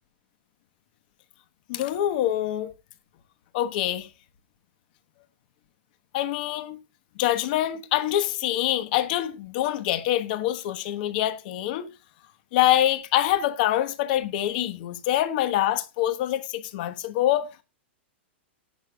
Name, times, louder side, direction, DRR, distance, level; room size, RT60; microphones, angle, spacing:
voice 1, 1.7-2.7 3.5-4.1 6.1-6.8 7.2-11.9 12.5-17.6, left 13 dB, 45° left, 1.2 m, -25 dB
17.5 x 6.2 x 2.4 m
supercardioid pair, 160°, 6 cm